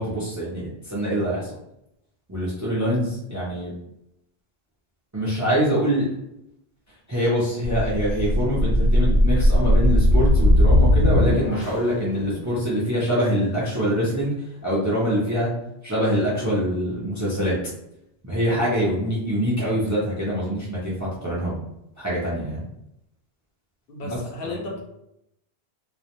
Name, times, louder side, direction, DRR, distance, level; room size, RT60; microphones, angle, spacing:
voice 1, 0.0-1.5 2.3-3.8 5.1-6.1 7.1-15.5 15.8-17.6 18.2-21.6 22.0-22.7 24.0-24.7, equal, 25° right, -7 dB, 0.4 m, -24 dB
sound 1, 7.6-12.0, left 1 dB, 85° left, 1.1 m, -18 dB
voice 2, 12.1-12.4 23.9-24.8, left 2 dB, 65° left, -1 dB, 0.7 m, -34 dB
2.3 x 2.1 x 2.8 m, 0.82 s
omnidirectional pair, 1.1 m